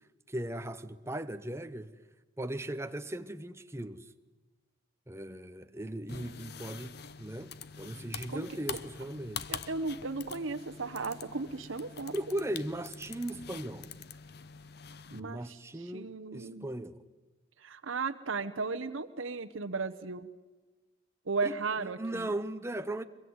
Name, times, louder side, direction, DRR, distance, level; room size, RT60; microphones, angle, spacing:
voice 1, 0.3-1.9 2.4-4.1 5.1-9.5 12.1-13.9 15.1-17.0 21.4-23.0, right 1 dB, 15° right, 0.8 m, -38 dB
sound 1, 6.1-15.2, left 7 dB, 50° left, 0.9 m, -45 dB
voice 2, 8.3-8.8 9.5-12.1 15.1-15.6 15.9-16.7 17.6-20.3 21.3-22.3, right 4 dB, 80° right, 1.0 m, -35 dB
23.5 x 22.5 x 9.6 m
head